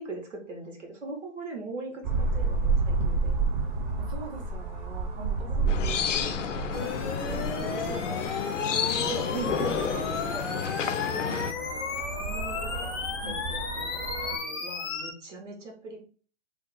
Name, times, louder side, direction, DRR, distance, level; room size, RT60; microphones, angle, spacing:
voice 1, 0.0-3.4 5.6-5.8 6.8-8.3 9.0-11.9 12.2-16.0, right 2 dB, 80° right, 1 dB, 1.3 m, -40 dB
sound 1, 2.0-14.4, right 3 dB, 40° right, 0.7 m, -31 dB
voice 2, 4.0-6.5 11.2-11.5 13.2-13.4, right 2 dB, 60° right, 1 dB, 1.6 m, -43 dB
sound 2, 5.7-11.5, left 8 dB, 80° left, 0.5 m, -31 dB
sound 3, 6.7-15.1, left 4 dB, 20° left, 0.4 m, -34 dB
2.8 x 2.2 x 3.9 m, 0.40 s
hypercardioid pair, 130°, 37 cm